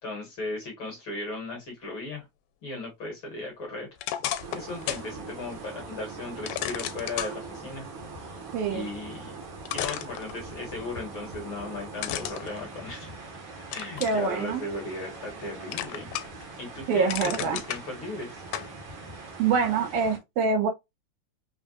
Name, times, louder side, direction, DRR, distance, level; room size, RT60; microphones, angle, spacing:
voice 1, 0.0-2.3 2.6-3.9 4.5-7.9 8.2-8.4 8.6-9.4 9.7-13.1 13.7-16.1 16.6-18.4, left 2 dB, 50° left, 1.8 m, -37 dB
sound 1, 4.0-5.1 5.5-5.6 6.5-7.3 9.1-9.2 9.7-10.7 12.0-13.3 13.7-14.2 14.7-15.4 15.7-16.4 16.8-17.8 18.5-18.7, left 12 dB, 85° left, 2.0 m, -33 dB
sound 2, 4.4-20.2, right 3 dB, 55° right, 1.4 m, -42 dB
voice 2, 8.5-8.9 14.0-14.6 16.9-17.6 19.4-20.7, right 5 dB, 80° right, 2.2 m, -25 dB
5.4 x 2.4 x 2.4 m
omnidirectional pair, 3.5 m